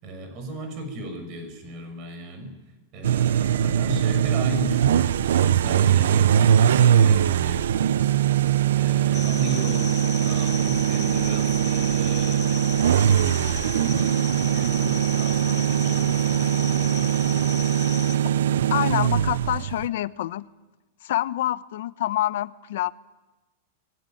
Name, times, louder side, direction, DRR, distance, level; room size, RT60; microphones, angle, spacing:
voice 1, 0.0-2.5 2.9-8.2 8.7-12.6 13.2-17.5, right 1 dB, 40° right, 7 dB, 6.6 m, -36 dB
sound 1, 3.0-19.9, right 10 dB, 85° right, 0.8 m, -21 dB
sound 2, 9.1-18.2, left 9 dB, 25° left, 3.1 m, -37 dB
voice 2, 18.7-20.5 21.0-22.9, left 13 dB, 70° left, 15 dB, 1.0 m, -26 dB
23.5 x 20.5 x 9.4 m, 1.1 s
supercardioid pair, 150°, 0 cm